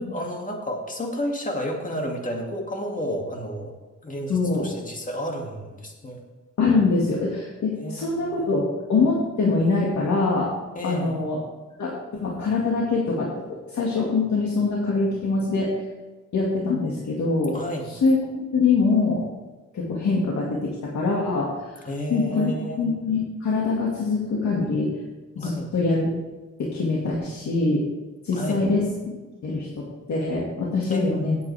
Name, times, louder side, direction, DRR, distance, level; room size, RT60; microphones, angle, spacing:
voice 1, 0.0-3.7 4.0-6.2 7.8-8.5 10.7-11.2 17.5-17.9 21.8-22.9 25.4-25.7 28.3-28.6 30.9-31.2, equal, 25° left, 1 dB, 2.3 m, -31 dB
voice 2, 4.3-4.7 6.6-10.5 10.8-11.4 11.8-15.8 16.3-17.6 17.9-19.2 19.7-21.8 22.1-22.5 22.8-25.0 25.4-26.1 26.6-27.8 28.2-29.2 29.4-31.4, left 3 dB, 65° left, -3 dB, 2.1 m, -24 dB
18.0 x 8.5 x 3.4 m, 1.2 s
cardioid pair, 105°, 31 cm